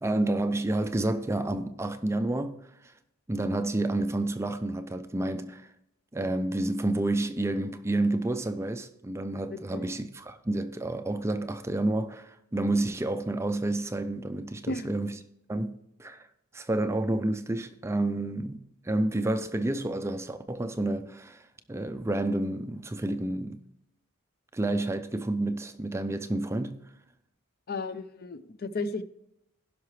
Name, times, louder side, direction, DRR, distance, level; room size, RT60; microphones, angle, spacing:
voice 1, 0.0-2.9 3.3-5.7 6.1-15.1 15.5-16.3 16.5-23.6 24.5-26.8, right 2 dB, 10° right, 0.4 m, -30 dB
voice 2, 9.5-9.8 14.7-15.0 27.7-29.0, left 3 dB, 45° left, 0.5 m, -34 dB
16.0 x 5.8 x 3.2 m
head